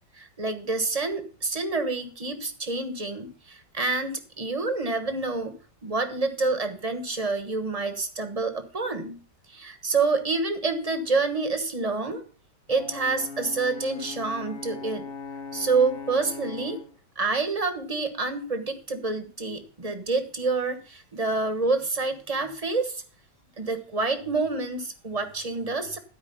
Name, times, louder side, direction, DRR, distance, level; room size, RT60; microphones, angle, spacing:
voice 1, 0.2-5.5 5.8-9.2 9.5-12.2 12.7-15.1 15.5-16.8 17.2-23.0 23.6-26.0, right 3 dB, 25° right, 8 dB, 1.1 m, -28 dB
Brass instrument, 12.7-16.9, left 4 dB, 45° left, 0.9 m, -39 dB
13.0 x 4.8 x 6.9 m, 0.40 s
omnidirectional pair, 1.9 m